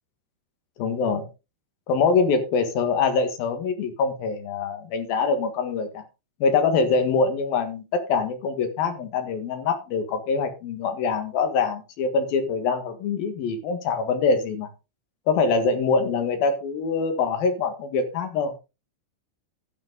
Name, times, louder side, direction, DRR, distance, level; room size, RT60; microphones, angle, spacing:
voice 1, 0.8-1.2 1.9-6.0 6.4-14.7 15.3-18.5, left 4 dB, 60° left, 7 dB, 3.2 m, -24 dB
12.5 x 8.4 x 3.8 m, 0.28 s
omnidirectional pair, 5.0 m